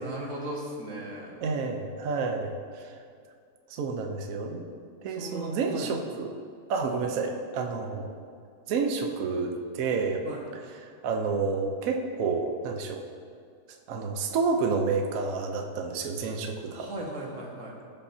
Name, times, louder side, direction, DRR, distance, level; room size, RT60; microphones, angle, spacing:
voice 1, 0.0-1.4 5.1-5.9 10.2-10.4 16.7-17.7, right 1 dB, 40° right, -3 dB, 1.7 m, -37 dB
voice 2, 1.4-2.9 3.7-4.6 5.0-6.3 6.7-8.1 8.7-10.2 10.8-13.0 13.9-16.9, right 4 dB, 65° right, 3 dB, 0.8 m, -29 dB
15.5 x 5.5 x 2.8 m, 2.3 s
omnidirectional pair, 2.2 m